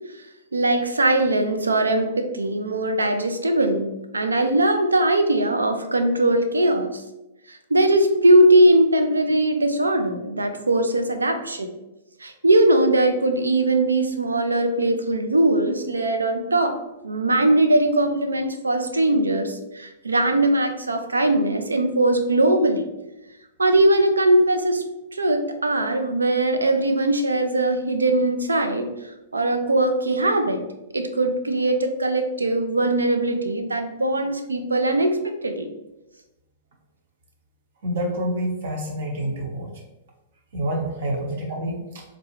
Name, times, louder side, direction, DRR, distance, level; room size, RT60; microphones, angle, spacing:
voice 1, 0.5-7.0 7.5-11.7 12.2-16.8 17.0-22.9 23.6-24.8 25.1-28.9 29.3-30.6 30.9-35.7, right 1 dB, 85° right, 7 dB, 0.4 m, -20 dB
voice 2, 37.8-39.7 40.5-42.0, right 1 dB, 60° right, 1 dB, 0.9 m, -27 dB
3.8 x 2.3 x 3.0 m, 0.96 s
figure-of-eight pair, 105°, 0 cm